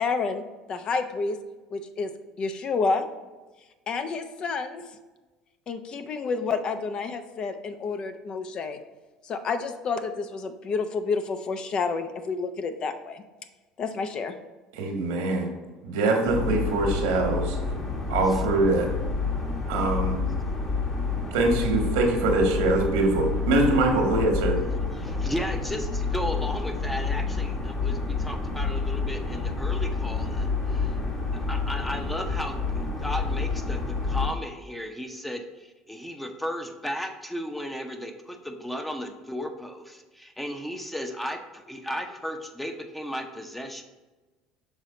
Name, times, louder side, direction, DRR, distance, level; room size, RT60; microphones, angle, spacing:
voice 1, 0.0-1.4 1.7-2.1 2.4-3.1 3.9-4.8 5.7-8.8 9.2-13.2 13.8-14.3, left 4 dB, 45° left, 8 dB, 0.6 m, -29 dB
voice 2, 14.7-15.5 15.8-17.6 18.1-18.9 19.7-20.2 21.3-24.6, right 2 dB, 85° right, 2 dB, 1.3 m, -23 dB
sound 1, 16.3-34.3, left 4 dB, 30° left, 1.3 m, -29 dB
voice 3, 25.0-30.9 31.5-32.6 33.0-43.8, equal, 5° left, 5 dB, 0.8 m, -35 dB
6.1 x 4.0 x 3.8 m, 1.2 s
supercardioid pair, 85°, 2 cm